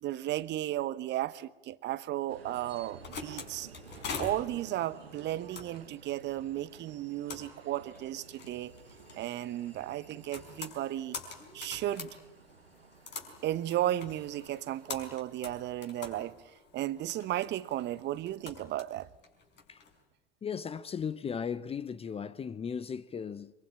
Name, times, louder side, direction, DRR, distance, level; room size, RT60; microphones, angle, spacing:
voice 1, 0.0-3.7 4.2-8.7 9.2-11.2 11.5-12.1 13.4-16.3 16.7-19.1, right 14 dB, 35° right, 1.0 m, -34 dB
sound 1, 2.3-15.1, right 6 dB, 90° right, 1.1 m, -54 dB
sound 2, 2.7-19.9, left 5 dB, 35° left, 4.8 m, -46 dB
voice 2, 20.4-23.5, left 7 dB, 20° left, 0.9 m, -36 dB
24.0 x 23.0 x 8.6 m
figure-of-eight pair, 85°, 29 cm